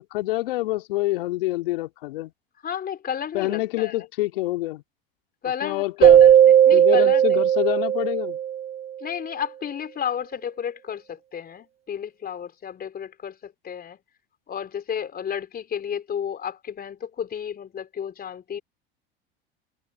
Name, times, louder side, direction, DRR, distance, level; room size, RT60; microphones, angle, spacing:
voice 1, 0.0-2.3 3.3-4.8 5.6-6.2 6.7-8.4, left 18 dB, 70° left, 3.4 m, -27 dB
voice 2, 2.6-4.1 5.4-7.4 9.0-14.0 14.5-18.6, left 8 dB, 30° left, 4.3 m, -32 dB
Keyboard (musical), 6.0-8.8, right 10 dB, 20° right, 0.5 m, -16 dB
hypercardioid pair, 85°, 29 cm